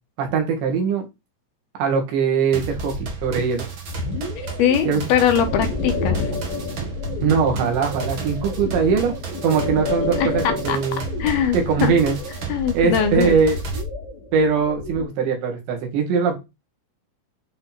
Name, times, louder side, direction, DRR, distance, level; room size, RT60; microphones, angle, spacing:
voice 1, 0.2-1.1 1.8-3.7 4.9-5.1 7.2-9.1 9.4-11.0 11.5-12.2 12.7-13.6 14.3-16.4, right 6 dB, 90° right, 3 dB, 4.4 m, -21 dB
sound 1, 2.5-13.8, right 4 dB, 55° right, 1.4 m, -33 dB
sound 2, 3.9-15.0, left 3 dB, 55° left, 3.9 m, -30 dB
voice 2, 4.6-6.4 10.2-10.8 11.2-11.9 12.5-13.4, left 8 dB, 75° left, 7 dB, 2.7 m, -21 dB
10.5 x 4.2 x 4.5 m, 0.25 s
omnidirectional pair, 4.9 m